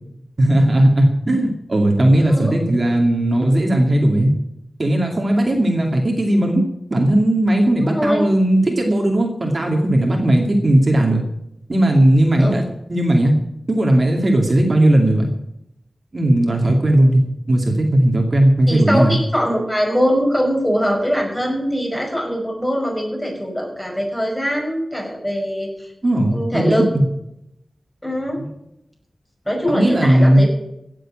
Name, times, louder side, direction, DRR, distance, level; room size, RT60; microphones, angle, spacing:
voice 1, 0.4-4.3 4.8-6.6 6.9-11.2 11.7-12.6 12.9-13.3 13.7-15.2 16.1-19.2 26.0-27.0 28.4-28.5 29.7-30.4, right 1 dB, 40° right, 1 dB, 2.5 m, -16 dB
voice 2, 7.8-8.2 12.4-12.6 18.7-25.9 26.3-26.8 28.0-28.4 29.5-30.5, equal, 10° left, 0 dB, 5.9 m, -22 dB
16.5 x 7.7 x 8.9 m, 0.81 s
wide cardioid pair, 105°, 0 cm